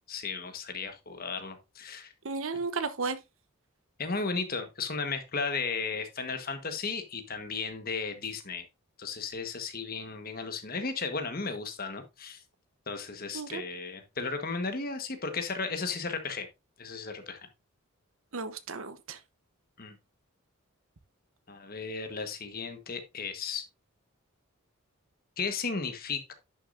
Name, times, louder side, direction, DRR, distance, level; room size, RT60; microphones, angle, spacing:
voice 1, 0.1-2.1 4.0-8.6 9.0-12.4 12.9-16.5 16.8-17.4 19.8-20.0 21.5-23.6 25.4-26.3, left 4 dB, 40° left, 1.3 m, -35 dB
voice 2, 2.2-3.2 13.3-13.6 18.3-19.2, right 4 dB, 65° right, 0.9 m, -34 dB
10.5 x 6.5 x 2.6 m
head